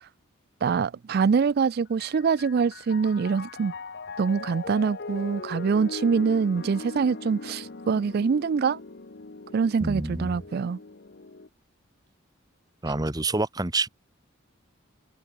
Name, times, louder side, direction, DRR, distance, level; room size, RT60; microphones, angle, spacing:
voice 1, 0.6-3.7 4.2-8.8 9.5-10.8, right 5 dB, 50° right, 0.3 m, -24 dB
Piano, 1.9-11.5, left 3 dB, 50° left, 1.0 m, -40 dB
voice 2, 9.8-10.4 12.8-13.9, right 2 dB, 20° right, 1.1 m, -27 dB
head